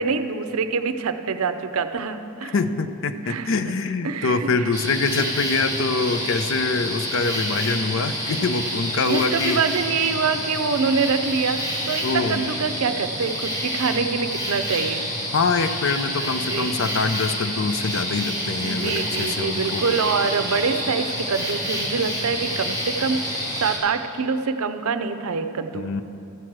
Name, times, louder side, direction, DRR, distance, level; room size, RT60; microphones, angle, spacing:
voice 1, 0.0-2.5 3.2-3.7 4.0-4.7 9.1-15.0 16.4-16.8 18.6-25.9, right 5 dB, 80° right, 9 dB, 0.5 m, -25 dB
voice 2, 2.4-9.6 12.0-12.6 15.3-20.0 25.7-26.0, left 4 dB, 60° left, 10 dB, 0.5 m, -24 dB
sound 1, 4.7-23.8, equal, 20° left, 2.6 m, -28 dB
14.0 x 4.7 x 7.4 m, 2.8 s
head